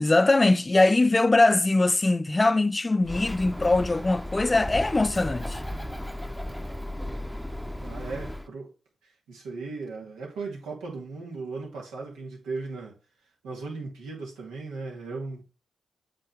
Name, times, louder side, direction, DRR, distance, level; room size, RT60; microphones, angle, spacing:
voice 1, 0.0-5.6, left 2 dB, 25° left, 0.4 m, -22 dB
Bird, 3.0-8.5, left 1 dB, ahead, 0.7 m, -35 dB
voice 2, 7.8-8.7 9.3-12.9 13.4-15.4, right 3 dB, 90° right, 2.3 m, -37 dB
7.8 x 3.8 x 4.4 m
supercardioid pair, 50°, 0 cm